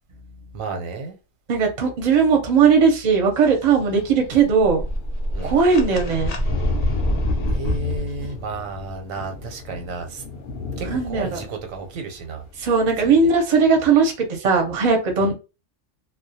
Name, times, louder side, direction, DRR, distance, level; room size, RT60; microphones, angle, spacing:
voice 1, 0.5-1.2 5.3-5.6 7.5-10.2 10.8-12.4 13.0-13.3 15.2-15.3, right 4 dB, 90° right, 1.0 m, -32 dB
voice 2, 1.5-4.9 5.4-6.3 10.9-11.4 12.6-15.3, right 5 dB, 45° right, 0.5 m, -18 dB
Thunder, 3.5-13.5, left 4 dB, 55° left, 0.8 m, -36 dB
sound 1, 4.4-8.0, left 1 dB, 75° left, 0.3 m, -24 dB
2.3 x 2.0 x 2.6 m
omnidirectional pair, 1.3 m